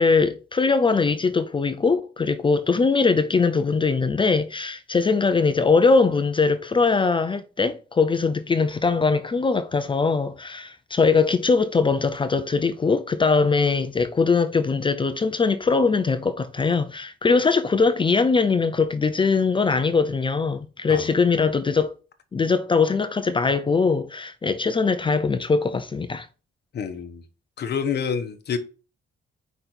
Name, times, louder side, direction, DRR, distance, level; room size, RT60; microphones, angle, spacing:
voice 1, 0.0-21.9 22.3-26.3, left 4 dB, 25° left, 0.6 m, -21 dB
voice 2, 26.7-27.2 27.6-28.6, left 6 dB, 55° left, 1.0 m, -28 dB
5.2 x 4.2 x 4.3 m
cardioid pair, 90°, 20 cm